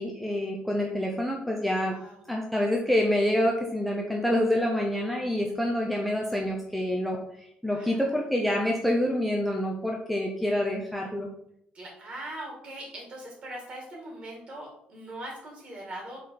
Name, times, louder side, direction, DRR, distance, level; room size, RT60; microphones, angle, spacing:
voice 1, 0.0-2.0 2.3-11.3, left 1 dB, ahead, -1 dB, 0.7 m, -27 dB
voice 2, 1.9-2.2 7.7-8.2 11.7-16.2, right 1 dB, 35° right, -2 dB, 2.2 m, -41 dB
5.3 x 4.1 x 5.8 m, 0.72 s
cardioid pair, 160°, 3 cm